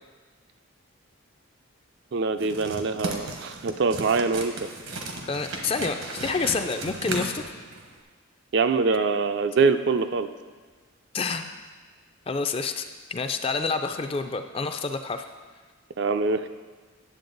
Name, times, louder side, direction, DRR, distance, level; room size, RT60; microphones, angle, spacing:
voice 1, 2.1-4.7 8.5-10.3 16.0-16.5, right 4 dB, 55° right, 9 dB, 0.4 m, -24 dB
sound 1, 2.4-8.0, right 2 dB, 80° right, 1.1 m, -35 dB
voice 2, 5.3-7.4 11.1-11.5 12.3-15.3, left 4 dB, 25° left, 7 dB, 0.4 m, -28 dB
10.0 x 7.5 x 3.9 m, 1.4 s
head